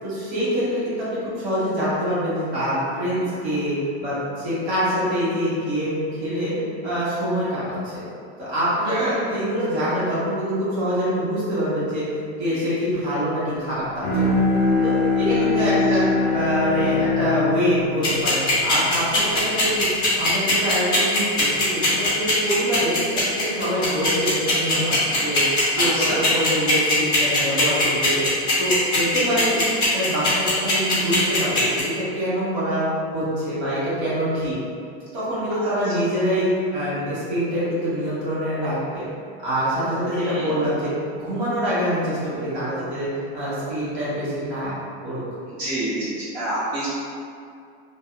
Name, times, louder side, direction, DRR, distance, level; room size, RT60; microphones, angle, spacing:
voice 1, 0.0-6.5 6.8-8.0 8.4-12.1 12.4-14.5 14.8-16.0 16.3-19.9 20.2-25.4 25.7-28.2 28.6-29.6 29.9-32.8 33.1-34.5 35.1-39.0 39.4-43.1 43.3-44.7 45.0-45.2, equal, 80° right, -10 dB, 1.5 m, -25 dB
Bowed string instrument, 14.0-19.5, left 3 dB, 40° left, 0.4 m, -22 dB
sound 1, 18.0-31.8, left 2 dB, 15° left, 0.9 m, -20 dB
voice 2, 25.8-26.2 29.1-29.2 40.1-40.4 45.6-46.9, right 1 dB, 45° right, -12 dB, 1.3 m, -28 dB
2.7 x 2.2 x 2.4 m, 2.4 s
supercardioid pair, 155°, 33 cm